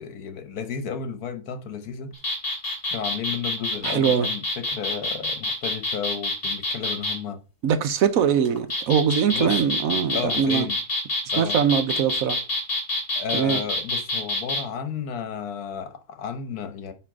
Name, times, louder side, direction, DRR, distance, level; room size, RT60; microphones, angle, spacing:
voice 1, 0.0-2.1 2.9-7.4 9.3-9.6 10.1-10.8 11.3-11.6 13.2-16.9, left 7 dB, 75° left, 1.5 m, -33 dB
sound 1, 2.1-7.2 8.4-14.6, left 2 dB, 40° left, 2.2 m, -27 dB
voice 2, 3.8-4.3 7.6-10.7 11.4-12.4 13.3-13.6, right 8 dB, 70° right, 1.1 m, -22 dB
9.6 x 3.4 x 3.6 m
omnidirectional pair, 1.6 m